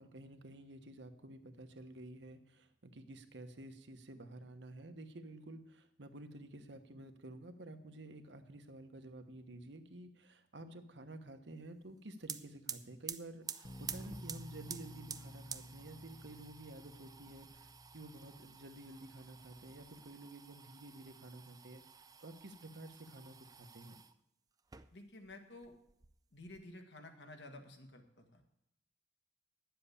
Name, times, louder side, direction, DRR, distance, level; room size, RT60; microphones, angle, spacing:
voice 1, 0.0-24.0, right 1 dB, 85° right, 7 dB, 1.1 m, -51 dB
sound 1, 11.9-12.0 12.2-24.1 24.6-25.4 25.6-26.6, right 7 dB, 20° right, 0.5 m, -50 dB
Bass guitar, 13.6-19.9, equal, 35° left, 0.8 m, -54 dB
voice 2, 24.9-25.7 26.3-28.4, left 2 dB, 75° left, 4 dB, 1.8 m, -52 dB
10.0 x 7.6 x 8.5 m, 0.79 s
head